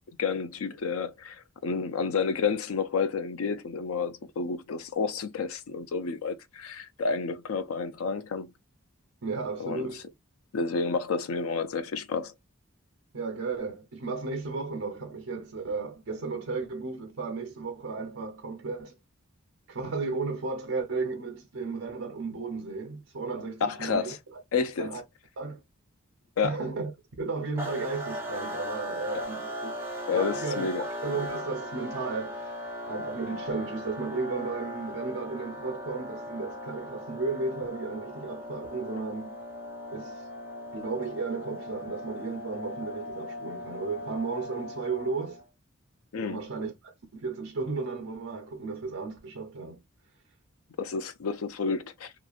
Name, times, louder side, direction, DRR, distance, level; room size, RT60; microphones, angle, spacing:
voice 1, 0.2-8.5 9.6-9.9 10.5-12.3 23.6-24.2 24.5-24.9 26.4-26.6 30.1-30.9 46.1-46.4 50.8-52.1, left 5 dB, 90° left, 0.4 m, -30 dB
voice 2, 9.2-10.0 13.1-19.0 19.7-24.1 24.8-25.0 25.4-25.6 26.4-26.9 27.2-29.9 30.1-32.5 32.9-39.4 39.9-40.3 40.7-45.4 46.1-49.8, right 4 dB, 70° right, 0.6 m, -34 dB
sound 1, 27.6-45.4, left 1 dB, 10° right, 0.7 m, -38 dB
2.8 x 2.4 x 2.3 m
head